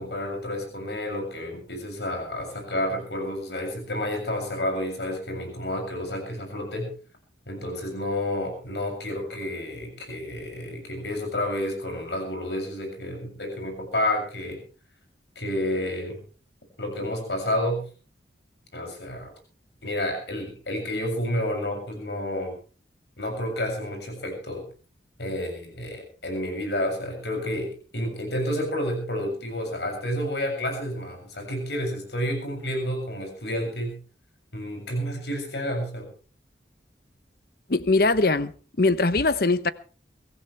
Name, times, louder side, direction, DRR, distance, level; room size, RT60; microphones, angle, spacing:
voice 1, 0.0-6.9 7.5-14.6 15.4-16.2 16.8-17.8 18.7-19.3 19.8-22.6 23.2-24.6 25.2-34.0 34.5-36.1, left 1 dB, 70° left, 7.1 m, -30 dB
voice 2, 37.7-38.5 38.8-39.7, left 3 dB, 55° left, 0.9 m, -21 dB
23.5 x 15.5 x 3.4 m
head